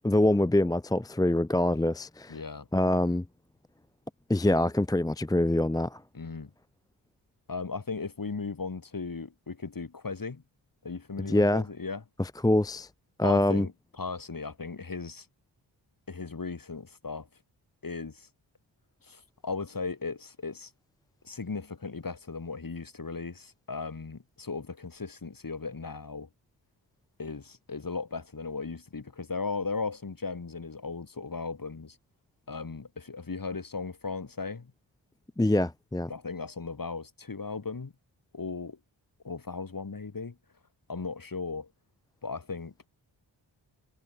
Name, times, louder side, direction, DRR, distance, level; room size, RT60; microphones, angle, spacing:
voice 1, 0.0-2.4 2.7-3.2 4.3-6.0 11.3-11.6 12.2-12.9 13.2-13.7 35.4-36.1, left 1 dB, 10° left, 0.7 m, -25 dB
voice 2, 2.3-2.7 6.1-6.5 7.5-10.4 10.8-12.0 13.2-15.3 16.1-17.3 17.8-18.3 19.0-20.7 21.2-26.3 27.2-32.0 32.5-34.7 36.1-37.9 38.3-38.8 39.2-40.4 40.9-41.7 42.2-42.7, left 4 dB, 45° left, 7.1 m, -37 dB
cardioid pair, 60°, 47 cm